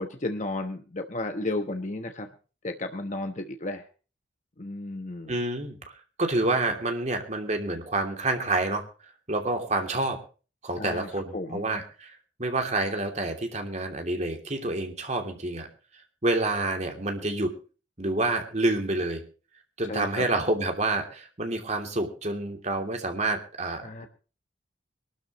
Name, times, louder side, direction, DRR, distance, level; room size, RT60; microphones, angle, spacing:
voice 1, 0.0-2.3 2.6-3.8 4.6-5.4 10.8-11.7 19.9-20.2 23.8-24.1, left 2 dB, 40° left, 6 dB, 1.1 m, -33 dB
voice 2, 5.3-5.8 6.2-8.8 9.3-10.2 10.6-12.1 12.4-15.7 16.2-17.6 18.0-19.2 19.8-24.1, right 2 dB, 40° right, 4 dB, 2.9 m, -28 dB
23.0 x 13.0 x 3.1 m, 0.36 s
head